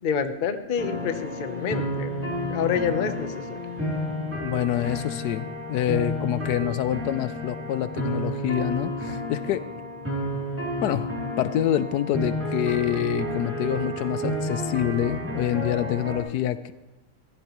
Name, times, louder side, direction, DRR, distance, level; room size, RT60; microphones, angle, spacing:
voice 1, 0.0-2.1 2.5-3.6, left 7 dB, 45° left, 9 dB, 0.7 m, -27 dB
sound 1, 0.8-16.2, equal, 10° right, 2.9 m, -31 dB
voice 2, 4.4-9.7 10.8-11.1 11.4-16.7, left 11 dB, 80° left, 14 dB, 1.2 m, -26 dB
14.5 x 14.5 x 3.0 m, 1.1 s
omnidirectional pair, 1.7 m